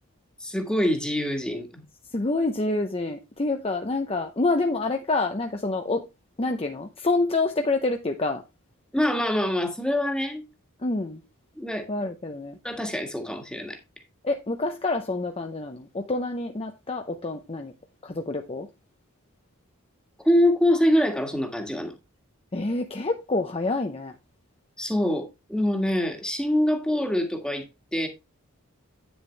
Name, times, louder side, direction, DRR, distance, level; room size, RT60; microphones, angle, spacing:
voice 1, 0.4-1.8 8.9-10.5 11.6-11.9 12.6-13.8 20.2-21.9 24.8-27.6 27.9-28.1, left 1 dB, 5° left, 1.7 m, -24 dB
voice 2, 2.1-6.0 6.4-8.4 10.8-11.2 11.9-12.6 14.2-17.7 18.0-18.7 22.5-24.1, left 2 dB, 25° left, 0.7 m, -27 dB
9.5 x 7.1 x 3.3 m
head